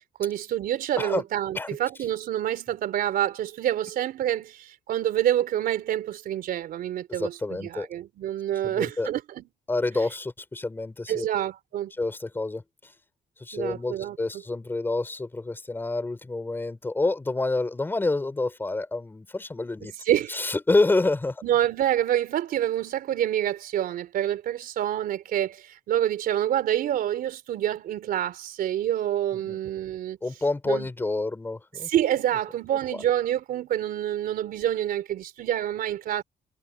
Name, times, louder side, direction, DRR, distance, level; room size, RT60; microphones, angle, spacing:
voice 1, 0.2-9.4 11.1-11.9 13.5-14.2 19.8-20.4 21.4-30.2 30.7-30.9 31.8-36.2, right 11 dB, 75° right, 4.0 m, -27 dB
voice 2, 7.1-7.9 8.6-9.1 9.7-11.3 12.0-12.6 13.4-19.9 20.3-21.4 29.3-29.6 30.2-31.9 32.9-33.0, left 2 dB, 15° left, 4.3 m, -28 dB
cardioid pair, 160°, 15 cm